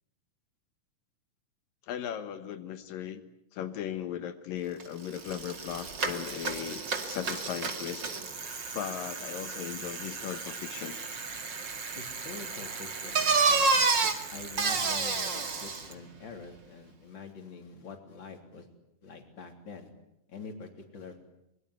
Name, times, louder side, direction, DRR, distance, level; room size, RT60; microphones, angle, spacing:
voice 1, 1.9-3.2 3.5-8.0 8.7-11.0 13.3-13.4, left 10 dB, 85° left, 9 dB, 3.0 m, -37 dB
Bicycle, 4.8-4.9 5.1-15.9, right 4 dB, 35° right, 2.5 m, -31 dB
voice 2, 12.0-18.7 19.0-19.9 20.3-21.2, left 4 dB, 35° left, 5 dB, 3.9 m, -46 dB
23.5 x 23.0 x 9.7 m, 0.81 s
omnidirectional pair, 3.9 m